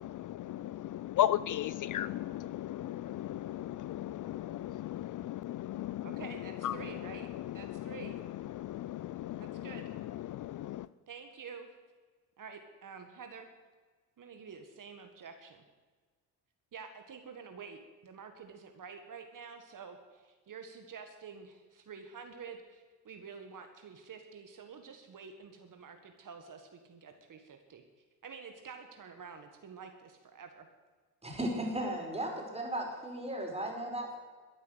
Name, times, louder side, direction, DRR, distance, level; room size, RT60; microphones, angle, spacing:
voice 1, 0.0-10.9, left 12 dB, 50° left, 18 dB, 0.5 m, -36 dB
voice 2, 6.0-7.3 7.5-8.2 9.4-9.9 11.1-11.7 12.4-13.5 14.2-15.6 16.7-27.8 28.2-30.7, right 6 dB, 50° right, 6 dB, 1.7 m, -48 dB
voice 3, 31.2-34.2, right 1 dB, 15° right, 1 dB, 5.0 m, -36 dB
13.0 x 9.4 x 8.1 m, 1.4 s
supercardioid pair, 70°, 40 cm